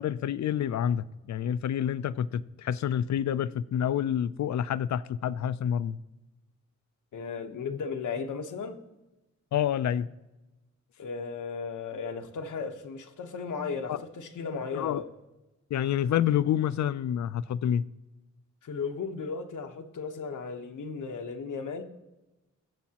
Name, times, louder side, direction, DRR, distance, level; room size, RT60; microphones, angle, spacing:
voice 1, 0.0-6.0 9.5-10.1 13.9-14.0 14.7-15.0 15.7-17.8, left 9 dB, 65° left, 0.4 m, -28 dB
voice 2, 7.1-8.8 11.0-15.1 18.6-21.8, left 5 dB, 85° left, 1.0 m, -35 dB
21.5 x 7.1 x 2.9 m
wide cardioid pair, 175°, 30 cm